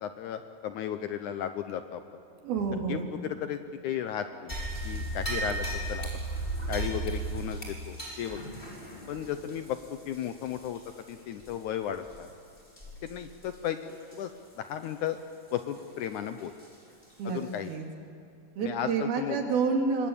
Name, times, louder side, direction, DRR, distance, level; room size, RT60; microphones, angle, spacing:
voice 1, 0.0-2.0 2.9-3.6 3.8-4.5 4.8-6.1 6.7-8.4 9.1-9.8 10.1-10.8 11.1-12.3 13.0-14.3 14.6-15.2 15.5-16.5 17.3-17.7 18.6-19.4, left 10 dB, 75° left, 9 dB, 1.9 m, -34 dB
voice 2, 2.4-3.1 17.2-17.4 17.7-17.9 18.6-20.1, right 5 dB, 85° right, 2 dB, 4.4 m, -28 dB
sound 1, 4.5-11.1 11.4-11.5 12.1-12.3 12.8-13.1 13.4-13.5 14.1-14.2 16.6-16.7 17.3-17.4, right 2 dB, 15° left, 5.4 m, -35 dB
26.0 x 22.0 x 8.8 m, 2.5 s
omnidirectional pair, 4.2 m